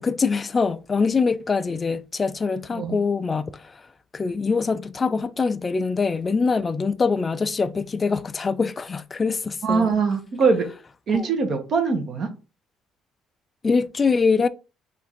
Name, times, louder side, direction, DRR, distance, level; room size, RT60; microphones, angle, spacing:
voice 1, 0.0-3.9 4.1-9.9 11.1-11.3 13.6-14.5, left 4 dB, 25° left, 0.3 m, -24 dB
voice 2, 9.6-10.7 11.1-12.3, right 5 dB, 45° right, 1.0 m, -22 dB
3.5 x 2.5 x 4.4 m
cardioid pair, 110°, 0 cm